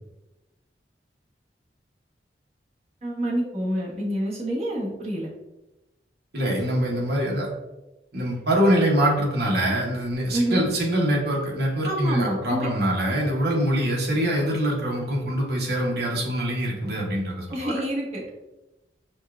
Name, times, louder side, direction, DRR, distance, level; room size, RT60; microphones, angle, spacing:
voice 1, 3.0-5.3 10.3-10.6 11.8-12.9 17.5-18.3, right 1 dB, 35° right, -6 dB, 1.1 m, -27 dB
voice 2, 6.3-7.5 8.1-17.7, equal, 65° right, -2 dB, 0.9 m, -24 dB
5.3 x 2.2 x 2.4 m, 1.0 s
head